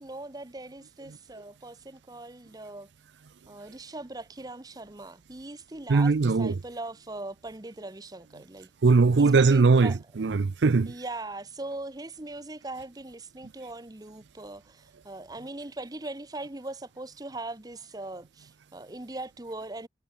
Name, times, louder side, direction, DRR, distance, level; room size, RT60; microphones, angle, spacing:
voice 1, 0.0-2.9 3.5-8.7 9.2-10.0 10.9-19.9, right 2 dB, 20° right, 1.0 m, -40 dB
voice 2, 5.9-6.6 8.8-10.9, right 4 dB, 90° right, 0.6 m, -21 dB
head